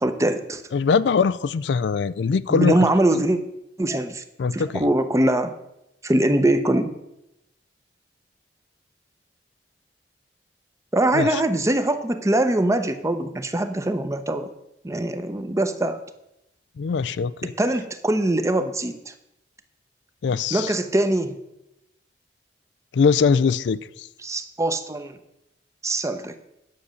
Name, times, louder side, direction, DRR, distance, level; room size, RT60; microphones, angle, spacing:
voice 1, 0.0-0.6 2.5-3.4 3.8-4.2 4.5-5.5 6.0-6.9 10.9-14.5 14.8-16.0 17.6-19.1 20.5-21.4 24.2-25.2 25.8-26.4, right 1 dB, 20° right, 0.7 m, -22 dB
voice 2, 0.7-2.7 3.1-3.2 4.4-4.8 11.1-11.4 16.8-17.5 20.2-20.7 22.9-24.1, left 5 dB, 85° left, 0.4 m, -22 dB
9.6 x 7.0 x 6.4 m
head